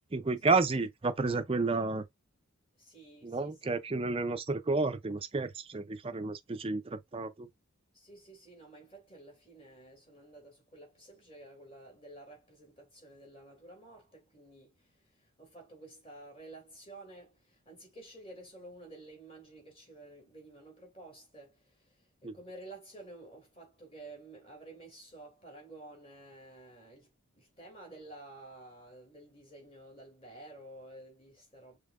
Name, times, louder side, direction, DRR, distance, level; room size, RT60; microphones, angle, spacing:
voice 1, 0.1-2.1 3.2-7.5 22.2-22.3, right 3 dB, 25° right, 0.5 m, -31 dB
voice 2, 2.8-3.5 7.9-31.8, right 2 dB, 25° left, 2.5 m, -52 dB
5.4 x 3.6 x 2.4 m
head